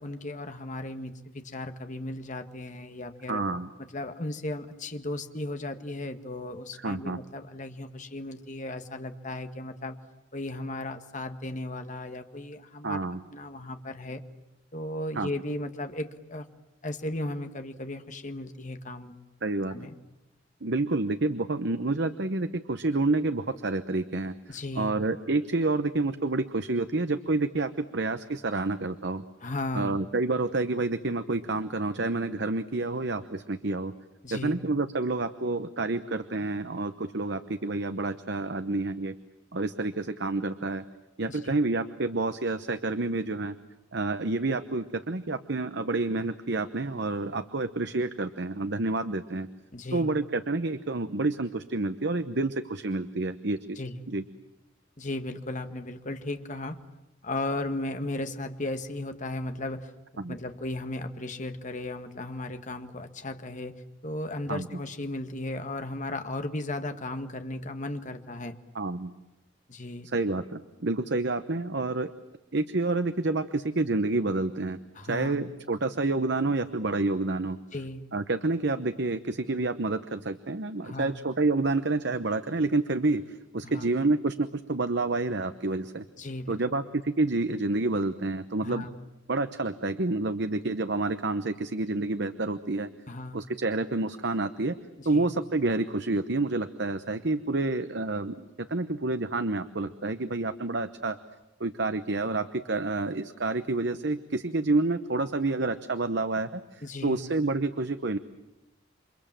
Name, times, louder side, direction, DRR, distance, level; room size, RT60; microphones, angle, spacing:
voice 1, 0.0-3.4 3.9-10.0 10.3-14.2 14.7-16.5 16.8-19.2 19.7-19.9 24.5-24.9 29.4-30.0 34.2-34.5 41.3-41.5 49.7-50.1 53.7-54.0 55.0-56.8 57.2-59.9 60.3-68.6 69.7-70.1 74.9-75.4 77.7-78.1 80.8-81.2 83.6-83.8 86.2-86.6 88.6-88.9 93.1-93.4 95.0-95.3 106.8-107.2, left 2 dB, 40° left, 7 dB, 1.7 m, -36 dB
voice 2, 3.3-3.7 6.8-7.2 12.8-13.2 15.2-15.3 19.4-19.7 20.6-29.2 29.7-33.9 34.3-39.1 39.5-40.8 41.2-43.5 43.9-49.5 49.9-53.8 54.1-54.2 60.2-60.4 64.5-64.7 68.7-69.1 70.1-72.1 72.5-74.8 75.1-77.6 78.1-86.0 86.5-88.8 89.3-92.9 93.3-94.7 95.0-101.2 101.6-108.2, right 2 dB, 60° right, 10 dB, 1.0 m, -29 dB
29.0 x 25.5 x 7.6 m, 0.97 s
head